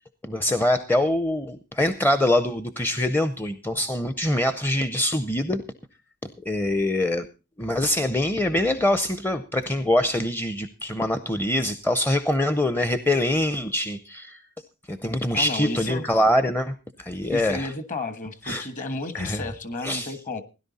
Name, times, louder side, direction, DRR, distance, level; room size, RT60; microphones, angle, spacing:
voice 1, 0.2-5.6 6.5-7.3 7.6-14.4 14.9-17.7 18.5-18.7 19.1-19.5 19.8-20.2, left 1 dB, 10° left, 0.6 m, -24 dB
voice 2, 15.3-16.1 17.3-20.4, left 2 dB, 35° left, 1.4 m, -32 dB
16.5 x 11.0 x 4.1 m
head